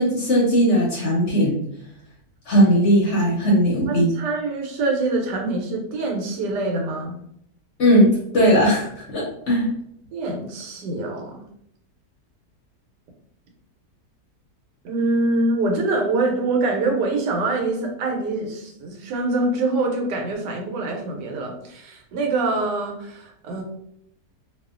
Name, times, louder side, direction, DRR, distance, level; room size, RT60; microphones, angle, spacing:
voice 1, 0.0-1.6 2.5-4.1 7.8-9.7, equal, 60° left, -3 dB, 0.8 m, -18 dB
voice 2, 3.9-7.2 10.1-11.4 14.8-23.6, right 2 dB, 90° right, 1 dB, 1.3 m, -25 dB
2.7 x 2.4 x 2.4 m, 0.73 s
omnidirectional pair, 1.8 m